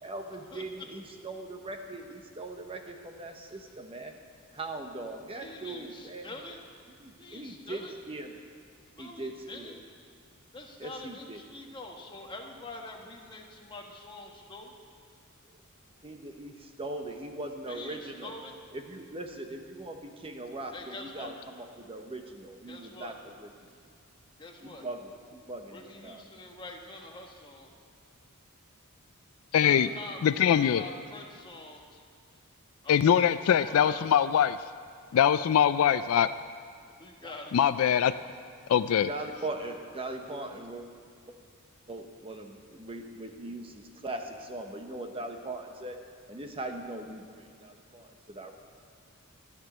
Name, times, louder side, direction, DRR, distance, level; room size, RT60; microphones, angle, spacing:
voice 1, 0.0-4.2 4.5-6.4 7.0-8.4 9.0-9.7 10.8-11.4 16.0-18.3 18.7-23.5 24.6-26.2 37.2-37.4 37.8-37.9 39.1-40.8 41.3-41.4 41.9-46.0 46.3-48.5, right 2 dB, 25° right, 4 dB, 0.9 m, -40 dB
voice 2, 5.3-6.6 7.2-7.9 8.9-9.8 10.5-14.8 17.7-18.5 20.7-21.3 22.7-23.1 24.4-24.9 25.7-27.7 29.6-32.0 32.8-34.1 37.0-37.6, left 2 dB, 20° left, 1 dB, 1.3 m, -45 dB
voice 3, 29.5-29.9 30.2-30.8 32.9-34.6 35.1-36.3 37.5-38.1 38.7-39.1, left 9 dB, 70° left, 13 dB, 0.3 m, -22 dB
13.5 x 6.1 x 9.7 m, 2.1 s
head